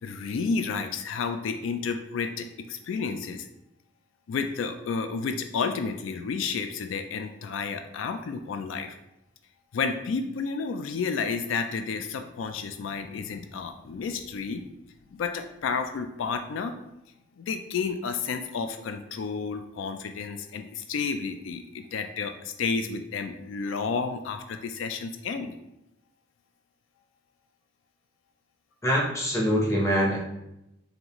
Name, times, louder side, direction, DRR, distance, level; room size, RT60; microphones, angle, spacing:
voice 1, 0.0-3.5 4.3-9.0 9.7-14.6 15.1-16.7 17.4-25.5, left 5 dB, 85° left, 7 dB, 0.3 m, -31 dB
voice 2, 28.8-30.2, equal, 15° left, -3 dB, 0.8 m, -24 dB
3.9 x 3.4 x 3.0 m, 0.87 s
head